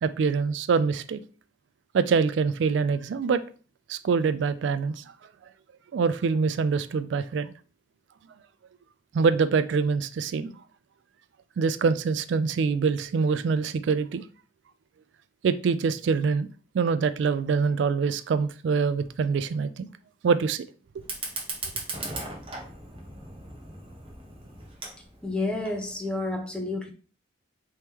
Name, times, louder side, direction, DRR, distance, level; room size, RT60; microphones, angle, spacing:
voice 1, 0.0-1.2 1.9-3.4 3.9-5.0 5.9-7.5 9.1-10.5 11.6-14.2 15.4-16.5 16.7-19.9 20.2-20.7, right 5 dB, 70° right, 0.3 m, -25 dB
Fire, 21.0-26.0, right 2 dB, 30° right, 1.0 m, -38 dB
voice 2, 25.2-26.9, left 2 dB, 5° left, 0.6 m, -30 dB
3.5 x 3.0 x 4.5 m
head